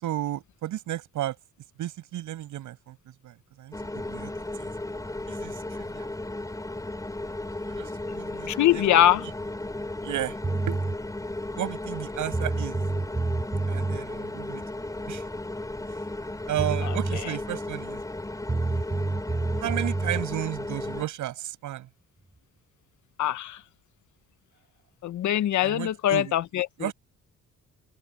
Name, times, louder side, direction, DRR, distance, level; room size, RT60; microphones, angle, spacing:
voice 1, 0.0-1.4 1.8-3.0 3.2-4.3 4.6-4.7 5.3-6.1 7.7-8.8 10.0-10.4 10.7-10.8 11.6-12.8 13.7-14.6 15.1-15.2 16.5-18.0 19.6-21.9 25.6-26.3 26.8-26.9, right 13 dB, 80° right, 5.9 m, -33 dB
sound 1, 3.7-21.0, left 2 dB, 10° left, 4.0 m, -35 dB
voice 2, 8.5-9.3 16.8-17.0 23.2-23.6 25.0-26.9, left 12 dB, 75° left, 1.2 m, -23 dB
sound 2, 10.4-11.0 12.0-12.1 12.3-14.0 16.2-16.3 16.6-17.2 18.5-20.2, right 3 dB, 20° right, 5.9 m, -28 dB
open air
cardioid pair, 90°, 30 cm